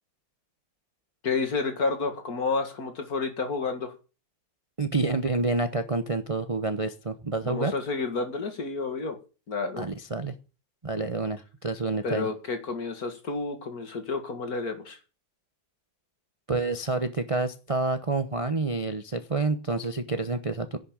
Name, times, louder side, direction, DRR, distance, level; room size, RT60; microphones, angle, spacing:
voice 1, 1.2-3.9 7.4-9.2 9.5-9.8 12.0-15.0, left 4 dB, 50° left, 7 dB, 2.4 m, -30 dB
voice 2, 4.8-7.7 9.8-10.4 10.8-12.3 16.5-20.8, right 3 dB, 30° right, 8 dB, 0.6 m, -28 dB
11.0 x 6.5 x 8.9 m, 0.33 s
omnidirectional pair, 2.1 m